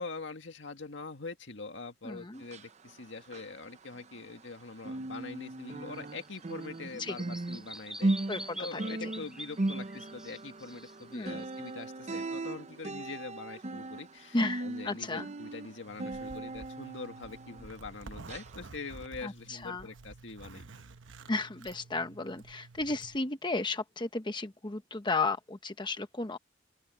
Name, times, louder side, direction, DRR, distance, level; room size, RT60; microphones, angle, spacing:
voice 1, 0.0-20.6, left 3 dB, 70° left, 1.9 m, -44 dB
voice 2, 2.0-2.4 7.0-7.2 8.3-8.8 11.1-11.5 14.3-15.3 19.2-19.9 21.3-26.4, left 3 dB, 25° left, 0.9 m, -34 dB
sound 1, 2.4-4.5 4.8-17.9 18.3-18.5 19.0-19.1, right 2 dB, 35° right, 0.7 m, -38 dB
Bird vocalization bird call bird song, 5.9-11.8, right 1 dB, 5° right, 6.0 m, -46 dB
Zipper (clothing), 15.9-23.2, right 3 dB, 75° right, 1.0 m, -51 dB
open air
head